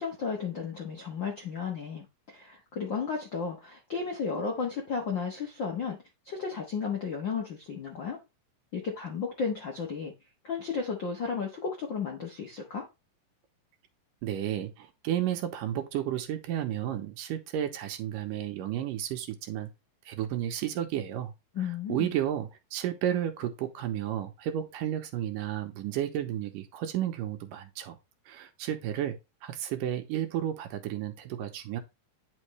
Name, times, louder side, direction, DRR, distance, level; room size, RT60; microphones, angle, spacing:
voice 1, 0.0-6.0 6.2-8.2 8.7-10.1 10.4-12.9 21.5-22.1, left 5 dB, 65° left, 1.1 m, -33 dB
voice 2, 14.2-19.7 20.1-21.3 21.6-28.0 28.3-29.2 29.4-31.8, right 11 dB, 75° right, 2.4 m, -32 dB
9.8 x 5.5 x 3.2 m
omnidirectional pair, 4.1 m